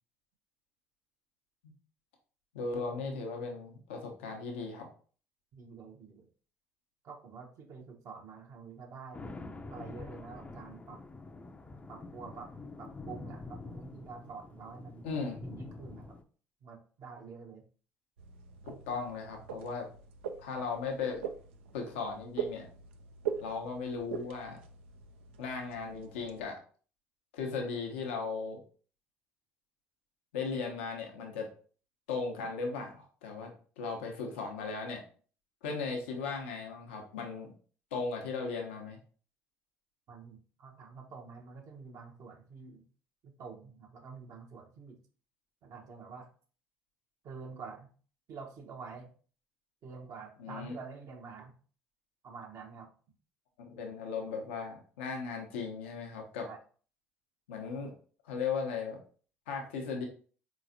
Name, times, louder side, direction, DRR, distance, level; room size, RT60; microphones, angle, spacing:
voice 1, 2.5-4.9 15.0-15.4 18.6-19.9 20.4-21.2 21.7-22.7 23.4-24.6 25.4-26.6 27.3-28.6 30.3-31.5 32.1-33.5 33.8-35.0 35.6-37.5 37.9-39.0 50.4-50.7 53.6-56.5 57.5-57.9 58.2-59.0 59.5-60.0, left 4 dB, 80° left, 2 dB, 0.7 m, -37 dB
voice 2, 5.5-6.3 7.0-9.3 9.7-11.0 11.9-12.5 12.8-15.1 15.4-16.2 16.6-17.6 40.1-42.8 43.2-45.0 45.6-46.3 47.2-47.9 48.3-49.1 49.8-51.5 52.2-52.9 56.4-56.6, right 5 dB, 55° right, 1 dB, 0.8 m, -47 dB
sound 1, 9.1-16.2, left 3 dB, 20° left, 0.5 m, -46 dB
sound 2, 18.2-26.5, right 8 dB, 85° right, 0.3 m, -42 dB
4.0 x 3.0 x 2.5 m, 0.42 s
hypercardioid pair, 60°, 6 cm